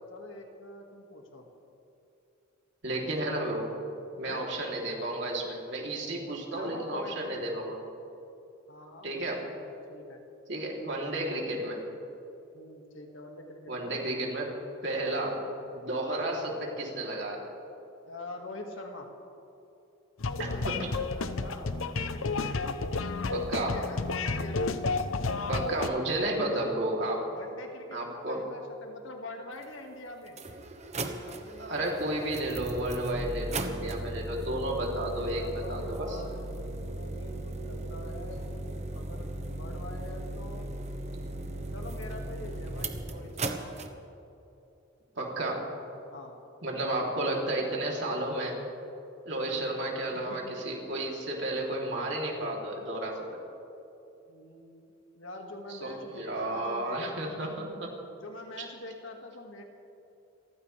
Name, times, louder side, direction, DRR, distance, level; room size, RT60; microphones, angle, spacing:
voice 1, 0.1-1.5 2.9-3.4 4.2-4.5 6.6-7.7 8.7-10.2 12.5-13.9 18.1-19.1 20.4-21.7 22.0-22.9 23.3-24.7 25.8-26.7 27.3-30.4 31.2-32.0 34.9-38.5 38.9-40.7 41.7-43.7 46.1-46.4 46.8-47.1 49.5-49.6 49.8-50.6 54.3-54.8 55.2-57.5 58.2-59.6, left 2 dB, 70° left, 2 dB, 2.0 m, -45 dB
voice 2, 2.8-3.7 4.1-7.8 9.0-9.5 10.5-11.8 13.7-15.4 15.7-17.4 20.4-20.9 23.3-23.8 25.5-27.2 27.9-28.4 31.6-36.2 45.2-45.7 46.6-48.6 49.2-53.2 55.7-57.9 58.6-58.7, right 1 dB, 60° right, -2 dB, 3.3 m, -32 dB
sound 1, 20.2-25.9, left 3 dB, 90° left, 0.8 m, -31 dB
sound 2, 29.6-29.7 30.3-43.9, right 2 dB, 35° right, 1.0 m, -37 dB
28.5 x 15.0 x 3.4 m, 2.9 s
head